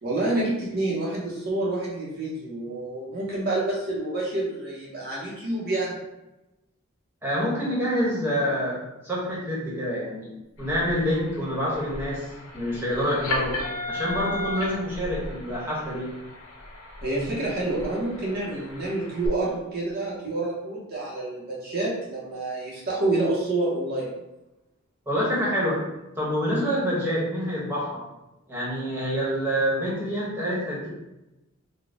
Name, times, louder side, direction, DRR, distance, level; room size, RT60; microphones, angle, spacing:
voice 1, 0.0-5.9 17.0-24.1, right 2 dB, 45° right, -6 dB, 0.9 m, -28 dB
voice 2, 7.2-10.3 10.6-12.3 12.5-13.5 13.9-16.1 25.1-25.8 26.2-28.0 28.5-30.9, equal, 10° right, -7 dB, 1.2 m, -27 dB
sound 1, 10.5-19.3, left 2 dB, 80° left, 0.9 m, -36 dB
4.0 x 2.3 x 3.5 m, 0.98 s
head